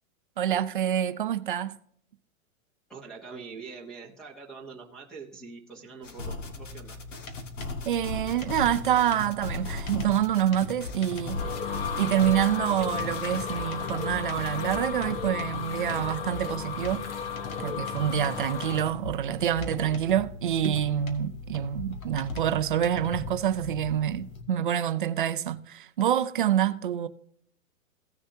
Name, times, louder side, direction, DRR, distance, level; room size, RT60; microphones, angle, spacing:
voice 1, 0.4-1.8 7.8-11.4 12.0-17.0 17.6-27.1, right 10 dB, 40° right, 0.5 m, -27 dB
voice 2, 2.9-7.0, right 5 dB, ahead, 0.9 m, -44 dB
sound 1, 6.0-13.5, left 3 dB, 60° left, 2.1 m, -38 dB
sound 2, 6.5-24.4, left 2 dB, 85° left, 2.1 m, -40 dB
sound 3, 10.9-18.9, left 6 dB, 45° left, 1.1 m, -34 dB
16.5 x 6.8 x 2.7 m
hypercardioid pair, 175°, 41 cm